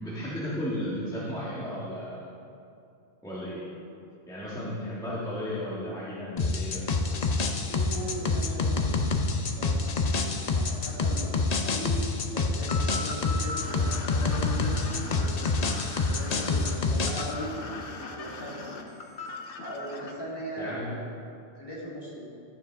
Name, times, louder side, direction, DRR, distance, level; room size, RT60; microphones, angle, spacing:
voice 1, 0.0-2.2 3.2-3.6 4.3-6.8 20.6-20.9, equal, 5° left, -9 dB, 1.6 m, -34 dB
sound 1, 6.4-17.3, left 3 dB, 45° left, 0.6 m, -27 dB
voice 2, 7.7-9.2 9.6-18.9 19.6-21.0 21.6-22.3, equal, 20° left, -7 dB, 2.3 m, -39 dB
sound 2, 12.7-20.1, left 3 dB, 85° left, 1.2 m, -39 dB
12.5 x 9.2 x 3.5 m, 2.5 s
omnidirectional pair, 1.2 m